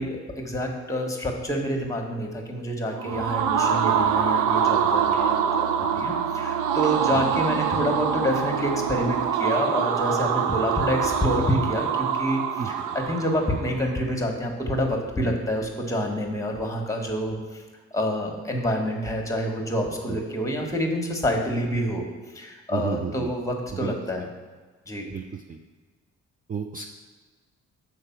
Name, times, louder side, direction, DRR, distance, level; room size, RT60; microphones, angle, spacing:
voice 1, 0.0-17.6 17.9-22.0 22.3-24.3 24.9-25.1, equal, 10° left, 2 dB, 1.4 m, -27 dB
sound 1, 2.9-13.8, right 8 dB, 90° right, 0.6 m, -25 dB
Musical instrument, 3.0-9.4, left 3 dB, 30° left, 0.9 m, -42 dB
voice 2, 22.7-23.3 23.8-23.9 25.1-25.6 26.5-26.9, right 6 dB, 30° right, 3 dB, 0.5 m, -32 dB
6.5 x 4.7 x 5.8 m, 1.4 s
cardioid pair, 90°, 30 cm